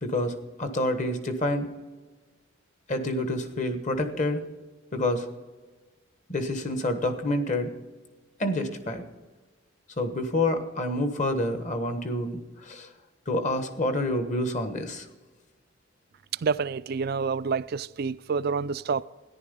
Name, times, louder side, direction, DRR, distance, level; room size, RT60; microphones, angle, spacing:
voice 1, 0.0-1.7 2.9-4.4 4.9-5.3 6.3-7.7 8.4-9.0 10.0-12.9 13.3-15.0, left 1 dB, 40° left, 1.3 m, -28 dB
voice 2, 16.4-19.0, right 5 dB, 50° right, 0.4 m, -28 dB
14.0 x 10.5 x 5.3 m
head